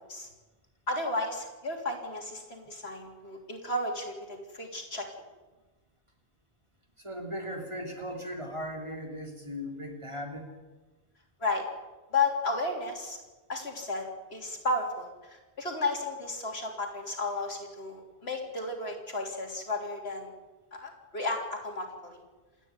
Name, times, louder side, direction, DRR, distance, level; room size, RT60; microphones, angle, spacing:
voice 1, 0.9-5.1 11.4-11.7 12.1-13.2 13.5-20.3 20.7-22.2, left 2 dB, 70° left, 2 dB, 3.5 m, -33 dB
voice 2, 7.0-10.5, equal, 25° right, 2 dB, 3.3 m, -38 dB
27.0 x 9.9 x 9.6 m, 1.2 s
omnidirectional pair, 1.1 m